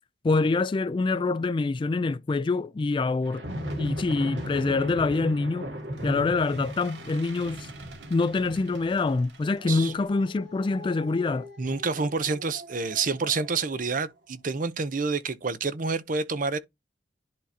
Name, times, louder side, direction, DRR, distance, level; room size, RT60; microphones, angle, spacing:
voice 1, 0.2-3.4 3.8-5.7 6.0-7.7 8.1-11.5, left 3 dB, 25° left, 0.3 m, -25 dB
sound 1, 3.2-13.8, equal, 70° right, 2.1 m, -38 dB
voice 2, 11.6-16.6, right 4 dB, 50° right, 0.7 m, -28 dB
10.5 x 3.7 x 2.8 m
head